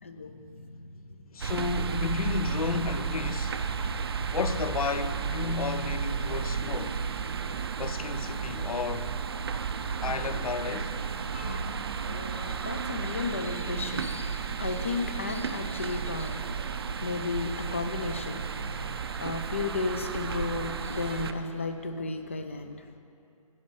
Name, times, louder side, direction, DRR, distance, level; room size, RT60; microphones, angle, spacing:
voice 1, 0.0-1.2 11.3-11.7 12.1-22.9, left 3 dB, 25° left, 0.3 m, -34 dB
voice 2, 1.3-3.7 4.3-7.0 7.8-9.2 10.0-11.0, left 5 dB, 85° left, 0.6 m, -32 dB
sound 1, 1.4-21.3, right 6 dB, 45° right, 0.4 m, -33 dB
10.5 x 5.2 x 7.7 m
hypercardioid pair, 165°, 18 cm